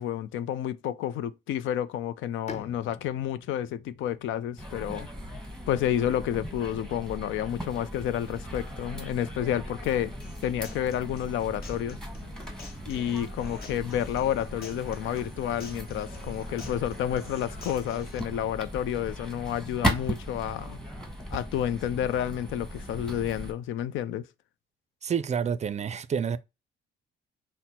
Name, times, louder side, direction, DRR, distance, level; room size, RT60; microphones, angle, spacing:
voice 1, 0.0-5.1 5.7-10.1 10.4-12.0 12.9-20.8 21.3-24.3, left 10 dB, 80° left, 0.4 m, -30 dB
Bowed string instrument, 2.5-6.1, left 5 dB, 35° left, 0.5 m, -47 dB
sound 1, 4.6-23.5, right 1 dB, 5° left, 1.2 m, -37 dB
Human voice / Acoustic guitar, 10.2-18.2, left 4 dB, 50° left, 1.3 m, -49 dB
voice 2, 25.0-26.4, right 7 dB, 35° right, 0.4 m, -28 dB
5.9 x 2.1 x 4.2 m
cardioid pair, 90°, 20 cm